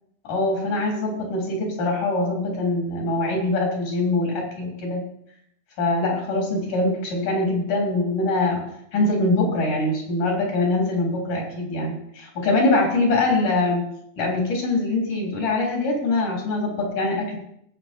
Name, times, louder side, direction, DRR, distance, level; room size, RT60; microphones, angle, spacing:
voice 1, 0.2-5.0 5.8-8.6 8.9-13.8 14.2-17.4, left 2 dB, 70° left, 0 dB, 5.2 m, -23 dB
18.0 x 8.1 x 4.5 m, 0.73 s
omnidirectional pair, 3.7 m